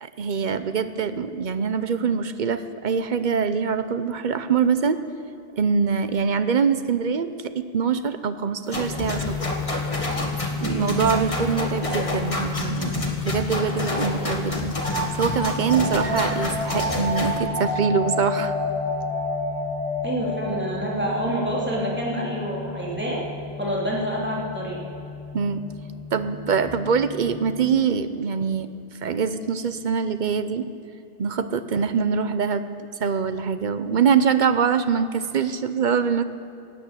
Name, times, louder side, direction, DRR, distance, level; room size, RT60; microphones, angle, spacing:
voice 1, 0.0-5.0 5.5-9.4 10.6-12.9 13.2-14.8 15.2-18.6 25.3-25.6 26.1-28.7 29.0-30.7 31.2-32.6 33.0-36.2, right 6 dB, 50° right, 11 dB, 0.9 m, -24 dB
sound 1, 8.7-17.4, left 2 dB, 35° left, 1.8 m, -29 dB
sound 2, 8.8-27.7, left 5 dB, 60° left, 1.8 m, -34 dB
voice 2, 10.6-11.0 20.0-23.2 23.6-24.8, right 1 dB, 10° right, -4 dB, 3.0 m, -27 dB
sound 3, 14.8-24.2, left 1 dB, 80° right, 3.9 m, -30 dB
16.5 x 9.1 x 9.0 m, 2.7 s
omnidirectional pair, 1.0 m